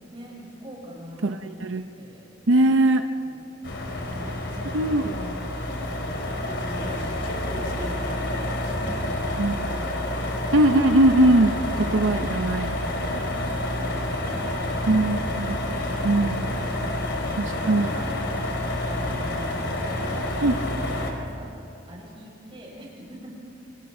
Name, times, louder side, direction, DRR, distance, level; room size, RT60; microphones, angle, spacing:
voice 1, 0.1-2.4 3.2-4.9 5.7-7.1 7.5-9.7 11.6-12.3 12.9-15.0 15.4-17.4 17.7-18.6 18.9-21.5 21.9-23.3, equal, 30° right, -2 dB, 6.1 m, -43 dB
voice 2, 2.5-3.0 4.7-5.1 9.4-9.6 10.5-11.6 11.9-12.7 14.9-15.6 16.0-16.6 17.4-17.9 20.4-20.6, right 1 dB, 85° right, 7 dB, 0.8 m, -20 dB
sound 1, 3.6-21.1, left 1 dB, 60° left, 3.6 m, -28 dB
29.5 x 26.0 x 4.5 m, 2.7 s
head